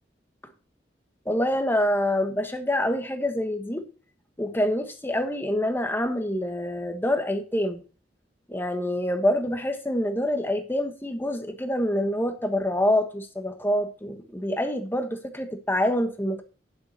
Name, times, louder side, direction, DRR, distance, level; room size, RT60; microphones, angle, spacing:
voice 1, 1.2-3.8 4.4-7.8 8.5-16.4, left 1 dB, 10° left, 1.3 m, -26 dB
9.4 x 7.6 x 4.2 m
head